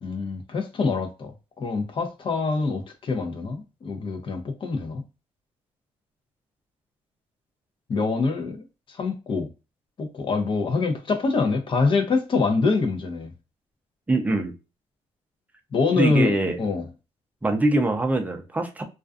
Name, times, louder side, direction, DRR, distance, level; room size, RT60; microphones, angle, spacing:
voice 1, 0.0-1.3 1.6-5.0 7.9-8.6 8.9-9.5 10.0-13.3 15.7-16.8, left 4 dB, 45° left, 0.7 m, -25 dB
voice 2, 14.1-14.5 16.0-16.6 17.4-18.8, right 2 dB, 15° right, 0.6 m, -23 dB
2.4 x 2.2 x 2.4 m
cardioid pair, 95°, 12 cm